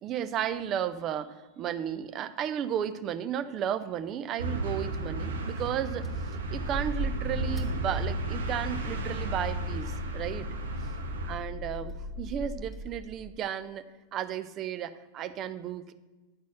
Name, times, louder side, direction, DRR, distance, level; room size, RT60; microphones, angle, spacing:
voice 1, 0.0-6.1 6.5-10.5 11.3-13.8 14.1-15.9, right 9 dB, 35° right, 12 dB, 0.5 m, -34 dB
sound 1, 4.4-11.4, right 2 dB, 65° right, 1.0 m, -34 dB
sound 2, 6.0-13.4, left 1 dB, 5° right, 1.9 m, -38 dB
9.5 x 4.1 x 7.4 m, 1.2 s
figure-of-eight pair, 90°, 0 cm